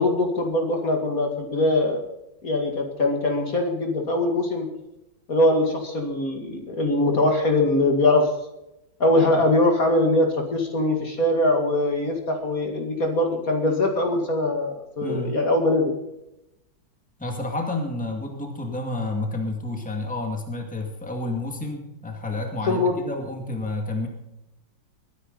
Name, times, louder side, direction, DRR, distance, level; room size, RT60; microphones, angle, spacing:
voice 1, 0.0-2.0 2.4-4.7 5.3-8.3 9.0-15.9 22.7-23.1, left 2 dB, 50° left, 3 dB, 2.5 m, -22 dB
voice 2, 15.0-15.4 17.2-24.1, left 2 dB, 5° left, 2 dB, 2.2 m, -30 dB
22.0 x 10.0 x 4.1 m, 0.88 s
omnidirectional pair, 2.0 m